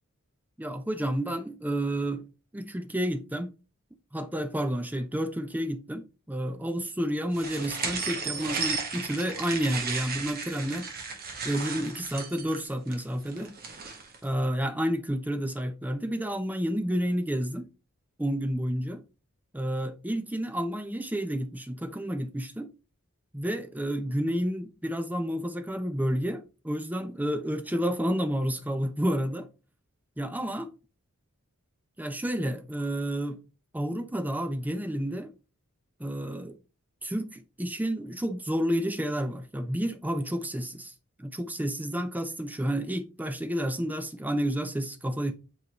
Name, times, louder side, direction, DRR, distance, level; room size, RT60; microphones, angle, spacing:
voice 1, 0.6-2.3 2.5-3.5 4.1-10.9 11.4-13.6 14.2-17.7 18.2-19.0 19.5-22.7 23.3-29.5 30.2-30.7 32.0-33.4 33.7-35.3 36.0-36.6 37.0-40.9 41.2-45.3, equal, 5° right, 0.5 m, -30 dB
sound 1, 7.3-14.2, right 4 dB, 40° right, 1.3 m, -35 dB
7.7 x 4.0 x 3.0 m
head